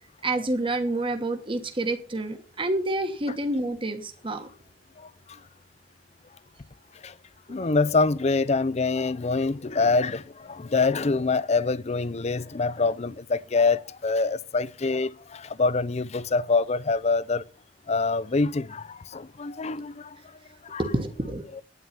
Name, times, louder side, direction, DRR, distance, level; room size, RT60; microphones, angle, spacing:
voice 1, 0.2-4.5 20.8-21.4, right 2 dB, 30° right, 1.2 m, -28 dB
voice 2, 5.0-5.4 7.0-7.1 7.5-17.4 17.9-20.2 20.6-20.8, left 3 dB, 35° left, 0.5 m, -25 dB
9.6 x 9.5 x 7.1 m
head